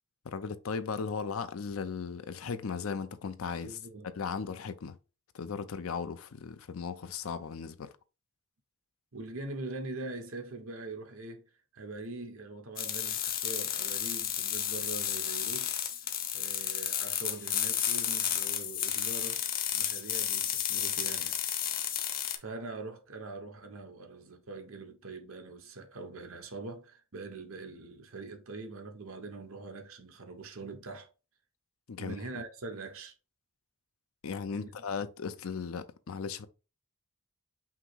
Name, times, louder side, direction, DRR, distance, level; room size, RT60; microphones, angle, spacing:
voice 1, 0.2-3.8 4.2-5.0 5.3-7.9 31.9-32.2 34.2-36.5, left 5 dB, 90° left, 0.5 m, -37 dB
voice 2, 3.6-4.1 9.1-11.4 11.7-15.8 16.3-19.4 19.7-21.4 22.3-31.1 32.0-33.1 34.5-34.7, right 3 dB, 80° right, 1.0 m, -43 dB
sound 1, 12.8-22.4, left 9 dB, 45° left, 0.7 m, -32 dB
5.7 x 2.0 x 4.6 m
head